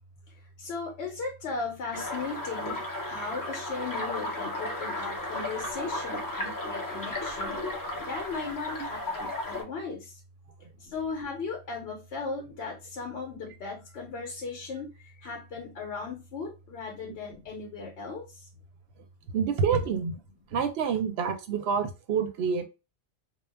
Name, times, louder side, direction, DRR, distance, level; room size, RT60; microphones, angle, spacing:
voice 1, 0.6-10.2 10.8-18.5, left 4 dB, 70° left, 0.8 m, -37 dB
sound 1, 1.9-9.6, left 1 dB, 35° left, 0.3 m, -34 dB
voice 2, 19.3-20.2 20.5-22.7, right 6 dB, 65° right, 0.8 m, -27 dB
2.3 x 2.0 x 3.2 m
omnidirectional pair, 1.2 m